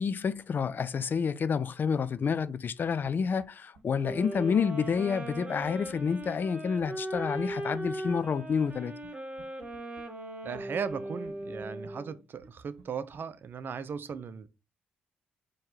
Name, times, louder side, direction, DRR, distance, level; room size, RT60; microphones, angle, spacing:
voice 1, 0.0-8.9, left 6 dB, 45° left, 0.4 m, -29 dB
sound 1, 3.0-3.1 3.4-3.5 3.8-3.9 4.1-4.4 4.9-5.0 5.3-5.4 5.6-6.3 6.8-6.9 7.1-7.2 7.5-7.6 7.9-8.1 8.7-8.8 9.0-9.1 9.4-10.0 10.5-10.6 10.9-11.0 11.3-11.4 11.6-11.9 12.4-12.5 12.8-12.9 13.1-13.2, right 4 dB, 70° right, 1.0 m, -53 dB
sound 2, 4.0-12.2, right 1 dB, 30° right, 2.1 m, -38 dB
voice 2, 10.4-14.5, right 6 dB, 50° right, 0.6 m, -37 dB
4.4 x 3.1 x 3.9 m
hypercardioid pair, 40°, 5 cm